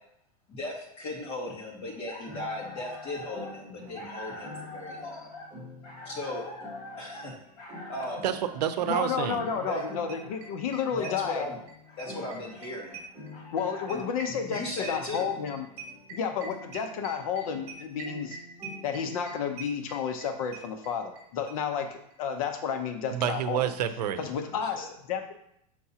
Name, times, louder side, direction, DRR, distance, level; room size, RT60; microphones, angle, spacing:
voice 1, 0.5-5.3 6.0-6.5 7.0-7.3 7.9-8.3 9.6-9.9 10.9-11.6 12.0-13.0 13.9-14.0 14.5-15.3 24.4-24.9, left 1 dB, 25° left, -3 dB, 2.0 m, -37 dB
sound 1, 1.8-14.3, left 2 dB, 75° left, 2.0 m, -45 dB
sound 2, 2.2-19.7, left 1 dB, 15° right, 2.7 m, -49 dB
voice 2, 8.2-9.4 23.1-24.2, right 10 dB, 90° right, 10 dB, 0.6 m, -28 dB
voice 3, 8.9-11.4 13.5-15.7 16.1-18.4 18.8-23.6 24.2-25.3, left 7 dB, 60° left, 6 dB, 0.8 m, -31 dB
sound 3, 9.5-9.6 9.8-9.9 10.1-11.7 12.0-21.2 21.5-21.6 21.8-21.9 22.1-22.2, right 5 dB, 35° right, 2.3 m, -43 dB
6.3 x 5.8 x 2.8 m, 0.74 s
supercardioid pair, 160°, 20 cm